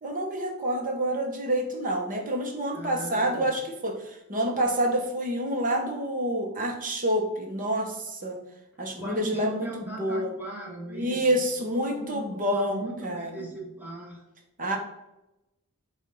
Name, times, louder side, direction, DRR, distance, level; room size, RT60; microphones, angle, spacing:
voice 1, 0.0-8.4 8.8-10.3 10.9-13.5 14.6-14.8, right 1 dB, 35° right, 2 dB, 1.0 m, -28 dB
voice 2, 2.7-3.5 8.9-11.2 11.6-14.2, right 2 dB, 10° right, -4 dB, 1.6 m, -39 dB
7.1 x 2.5 x 5.4 m, 0.91 s
head